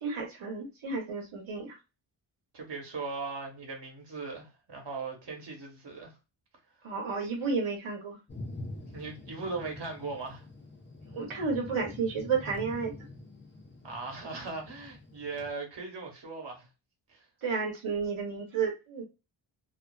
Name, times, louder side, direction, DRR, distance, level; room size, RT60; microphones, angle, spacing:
voice 1, 0.0-1.8 6.8-8.2 11.1-12.9 17.4-19.0, right 5 dB, 80° right, 0.8 m, -32 dB
voice 2, 2.5-6.2 8.9-10.4 13.8-16.7 17.1-17.2, right 4 dB, 60° right, 1.0 m, -39 dB
Thunder, 8.3-15.5, left 2 dB, 25° left, 0.6 m, -45 dB
2.4 x 2.2 x 2.2 m
wide cardioid pair, 70°, 48 cm